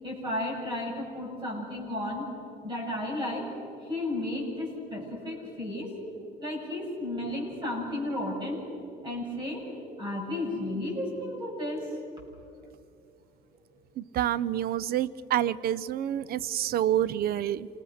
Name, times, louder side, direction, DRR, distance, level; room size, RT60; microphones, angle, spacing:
voice 1, 0.0-2.3 2.6-3.5 3.8-5.9 6.4-8.6 9.0-9.6 10.0-11.9, left 1 dB, 25° right, -2 dB, 7.9 m, -33 dB
voice 2, 14.0-17.7, right 11 dB, 65° right, 19 dB, 0.6 m, -28 dB
28.5 x 19.5 x 6.5 m, 2.6 s
cardioid pair, 110°, 17 cm